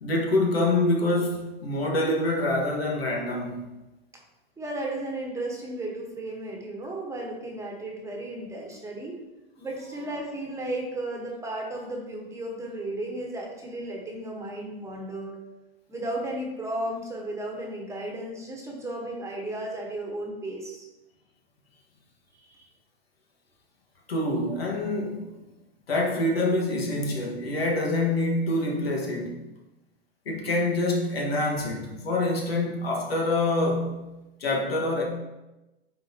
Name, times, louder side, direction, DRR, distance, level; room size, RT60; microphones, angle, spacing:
voice 1, 0.0-3.8 24.1-25.4 25.9-29.4 30.3-34.1 34.4-35.0, left 2 dB, 85° left, -1 dB, 1.7 m, -26 dB
voice 2, 4.6-9.2 9.6-15.4 15.9-20.9 22.3-22.7, right 1 dB, 10° right, -1 dB, 1.2 m, -34 dB
9.5 x 4.2 x 2.9 m, 1.0 s
hypercardioid pair, 120°, 30 cm